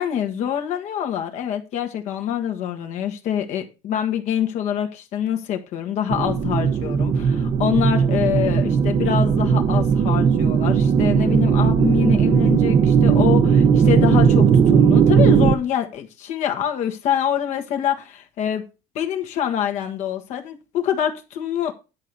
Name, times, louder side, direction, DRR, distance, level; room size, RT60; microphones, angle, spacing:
voice 1, 0.0-18.6 18.9-21.7, left 9 dB, 60° left, 1.5 m, -25 dB
sound 1, 6.1-15.5, right 7 dB, 35° right, 0.9 m, -17 dB
10.5 x 4.7 x 6.8 m
cardioid pair, 155°, 14 cm